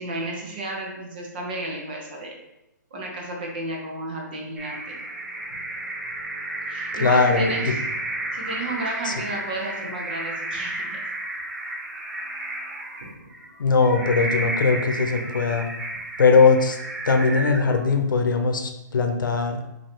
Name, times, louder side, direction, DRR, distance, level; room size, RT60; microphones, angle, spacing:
voice 1, 0.0-2.4 2.9-5.0 6.7-7.8 8.3-11.0, right 2 dB, 30° right, 0 dB, 0.8 m, -32 dB
sound 1, 4.6-18.1, right 2 dB, 65° right, 1.3 m, -32 dB
voice 2, 7.0-7.7 9.0-9.1 13.6-15.7 16.2-16.8 17.0-19.6, left 4 dB, 85° left, 5 dB, 0.7 m, -20 dB
5.2 x 2.8 x 3.6 m, 0.90 s
hypercardioid pair, 175°, 10 cm